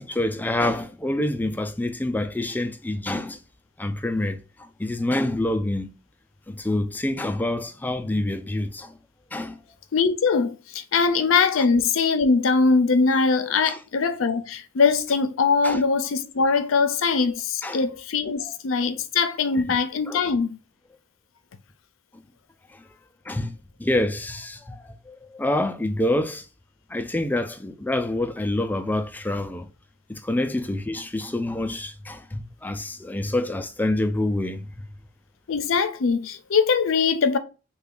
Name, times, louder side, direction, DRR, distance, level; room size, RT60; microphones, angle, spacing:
voice 1, 0.0-3.4 3.8-5.9 6.5-9.0 9.3-9.6 13.7-13.8 15.6-15.8 17.6-17.9 18.4-18.5 19.5-19.8 20.1-20.2 22.7-22.8 23.3-26.5 26.9-29.7 30.1-35.0, left 1 dB, 10° left, 0.3 m, -27 dB
voice 2, 9.9-20.6 35.5-37.4, left 4 dB, 85° left, 0.5 m, -22 dB
3.4 x 2.3 x 3.7 m
head